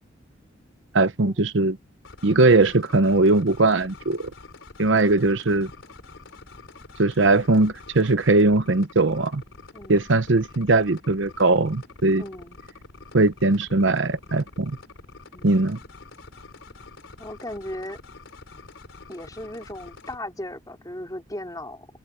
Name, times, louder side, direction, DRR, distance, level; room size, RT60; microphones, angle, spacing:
voice 1, 0.9-1.8 2.2-4.3 4.8-5.7 7.0-9.4 9.9-12.2 13.1-14.8 15.4-15.8, right 2 dB, 65° right, 0.8 m, -20 dB
sound 1, 2.0-20.2, left 3 dB, 75° left, 3.8 m, -46 dB
voice 2, 9.7-10.1 12.2-12.6 15.3-15.6 17.2-18.0 19.1-21.9, left 1 dB, 20° left, 4.5 m, -37 dB
head